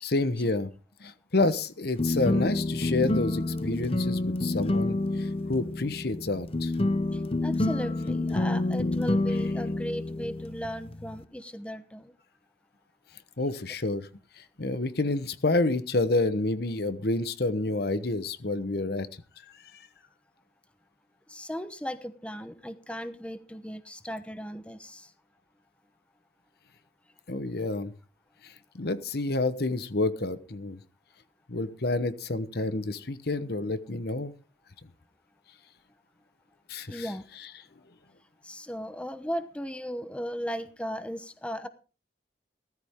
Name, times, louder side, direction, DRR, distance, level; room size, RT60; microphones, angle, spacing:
voice 1, 0.0-0.7 1.0-6.7 13.4-14.1 14.4-19.1 19.7-19.8 27.3-27.9 28.4-30.8 31.5-34.3 36.7-37.0, left 2 dB, 60° left, 13 dB, 1.1 m, -29 dB
sound 1, 2.0-11.2, left 2 dB, 30° left, 0.8 m, -28 dB
voice 2, 7.1-12.1 21.3-25.1 36.9-37.2 38.4-41.7, equal, 5° left, 11 dB, 0.9 m, -36 dB
16.5 x 14.0 x 3.6 m, 0.34 s
head